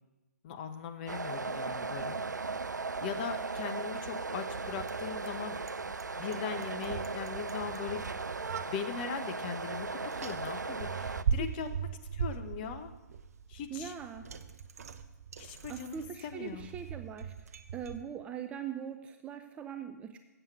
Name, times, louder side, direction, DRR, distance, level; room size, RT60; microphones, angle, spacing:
voice 1, 0.4-2.2 3.0-5.6 5.8-8.1 8.7-12.9 13.5-13.9 15.4-16.7, left 7 dB, 35° left, 7 dB, 0.9 m, -40 dB
sound 1, 1.1-11.2, right 4 dB, 85° right, 0.4 m, -37 dB
Bicycle, 1.7-18.0, right 7 dB, 60° right, 0.7 m, -41 dB
voice 2, 11.4-11.7 13.7-14.3 15.7-17.3 17.7-20.2, right 8 dB, 15° right, 7 dB, 0.4 m, -41 dB
7.9 x 7.4 x 7.9 m, 1.1 s
figure-of-eight pair, 130°, 9 cm